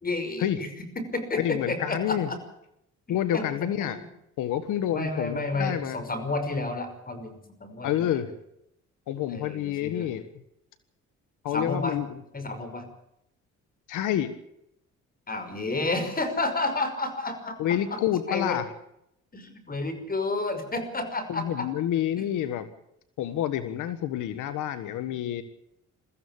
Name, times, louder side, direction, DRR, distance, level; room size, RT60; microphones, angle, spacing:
voice 1, 0.0-0.7 1.0-2.4 3.1-3.5 4.9-8.2 9.3-10.1 11.5-12.0 12.3-12.8 15.3-18.0 18.3-18.6 19.3-21.7 22.2-22.3, left 2 dB, 30° left, 9 dB, 5.7 m, -31 dB
voice 2, 1.4-2.3 3.1-4.0 4.4-6.0 7.8-8.3 9.1-10.3 11.4-12.1 13.9-14.3 17.6-18.7 21.3-22.7 23.2-25.4, left 11 dB, 90° left, 12 dB, 1.5 m, -28 dB
23.0 x 14.5 x 8.6 m, 0.79 s
cardioid pair, 90°, 30 cm